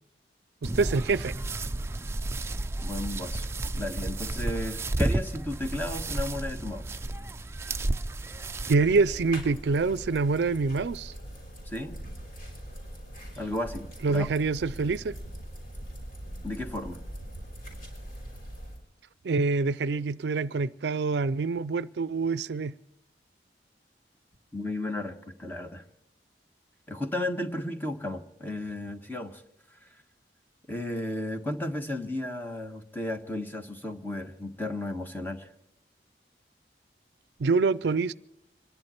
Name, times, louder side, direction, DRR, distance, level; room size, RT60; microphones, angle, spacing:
sound 1, 0.6-8.7, right 2 dB, 15° right, 0.5 m, -32 dB
voice 1, 0.6-1.3 8.7-11.1 14.0-15.1 19.2-22.7 37.4-38.1, right 4 dB, 75° right, 0.4 m, -26 dB
voice 2, 2.8-6.9 11.6-12.0 13.3-14.3 16.4-17.0 24.5-25.8 26.9-29.4 29.8-29.9 30.7-35.5, left 1 dB, 10° left, 1.3 m, -34 dB
sound 2, 8.8-18.8, equal, 50° left, 5.5 m, -42 dB
26.0 x 11.0 x 4.4 m
head